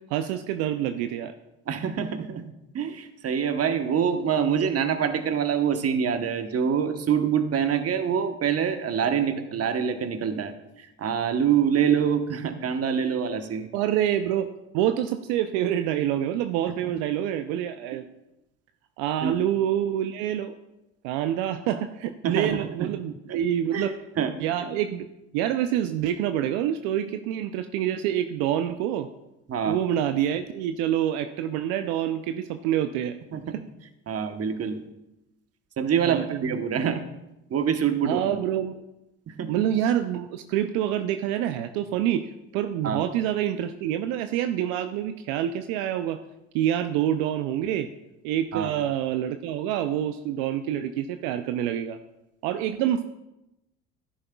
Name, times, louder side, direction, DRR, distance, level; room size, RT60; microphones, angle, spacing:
voice 1, 0.1-1.3 13.7-18.0 19.0-20.5 21.0-23.9 24.4-25.1 25.3-29.1 29.7-33.2 33.5-33.6 36.0-36.6 38.1-38.8 39.5-46.2 46.5-47.9 48.2-52.0 52.4-53.0, right 11 dB, 75° right, 8 dB, 0.5 m, -27 dB
voice 2, 1.7-2.4 2.7-13.7 16.8-16.9 19.2-19.4 22.2-22.9 23.3-23.4 23.7-24.3 29.5-29.8 33.3-33.4 34.1-34.8 35.8-37.0 37.5-38.4 39.3-39.6 42.8-43.0 48.5-48.7, right 7 dB, 45° right, 8 dB, 1.1 m, -25 dB
11.0 x 10.0 x 2.3 m, 0.92 s
hypercardioid pair, 65°, 35 cm